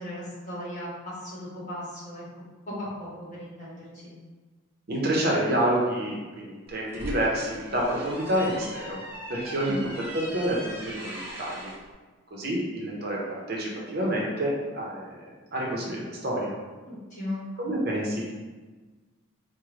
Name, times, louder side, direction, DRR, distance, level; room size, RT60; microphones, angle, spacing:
voice 1, 0.0-2.2 2.7-4.1 9.6-9.8 16.8-17.4, left 1 dB, 35° left, -8 dB, 1.4 m, -37 dB
voice 2, 4.9-9.0 9.3-11.7 12.3-16.5 17.6-18.3, right 1 dB, 50° right, -3 dB, 0.7 m, -28 dB
sound 1, 6.7-11.8, equal, 10° right, 0.7 m, -40 dB
4.8 x 2.1 x 3.1 m, 1.3 s
head